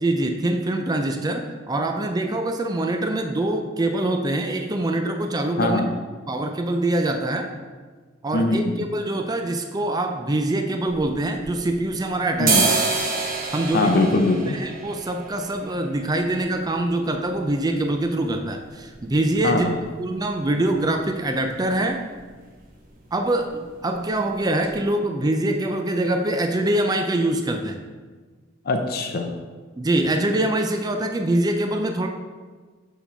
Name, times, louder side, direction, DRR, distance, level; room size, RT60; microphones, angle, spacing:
voice 1, 0.0-5.8 6.3-7.5 8.2-12.6 13.5-13.9 14.5-19.7 20.0-22.0 23.1-27.8 29.8-32.1, right 1 dB, 20° right, 4 dB, 0.4 m, -24 dB
voice 2, 5.6-5.9 8.3-8.7 12.4-12.7 13.7-14.6 19.4-19.8 28.7-29.3, left 2 dB, 50° left, 4 dB, 0.6 m, -21 dB
sound 1, 10.9-11.9 12.3-20.0 20.3-20.4 20.7-21.2 21.5-21.8 22.0-22.3 22.5-23.3 23.6-23.8 24.2-24.3 24.6-24.7, right 4 dB, 45° right, 1.1 m, -28 dB
6.9 x 4.7 x 4.4 m, 1.4 s
head